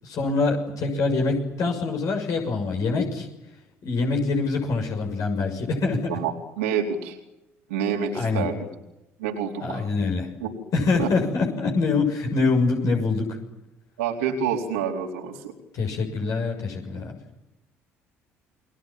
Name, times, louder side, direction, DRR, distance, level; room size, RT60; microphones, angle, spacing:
voice 1, 0.0-3.3 3.8-6.2 8.1-8.5 9.6-10.3 10.7-13.4 15.7-17.2, left 3 dB, 55° left, 2 dB, 6.8 m, -24 dB
voice 2, 6.1-7.2 7.7-8.6 9.2-9.8 10.4-10.6 11.0-11.1 14.0-15.5, right 7 dB, 75° right, 2 dB, 4.2 m, -27 dB
29.5 x 22.0 x 7.5 m, 0.93 s
figure-of-eight pair, 55°, 7 cm